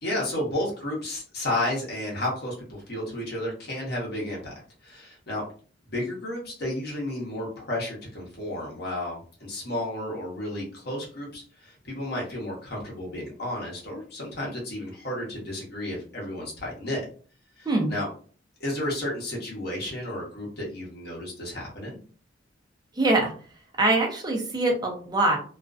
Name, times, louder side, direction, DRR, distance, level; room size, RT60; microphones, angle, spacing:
voice 1, 0.0-4.5 4.8-5.4 5.9-17.0 17.6-18.1 18.6-22.0, left 1 dB, 55° left, -2 dB, 1.0 m, -32 dB
voice 2, 23.0-23.3 23.8-25.4, right 2 dB, 20° right, 1 dB, 0.6 m, -23 dB
2.4 x 2.1 x 2.4 m, 0.42 s
head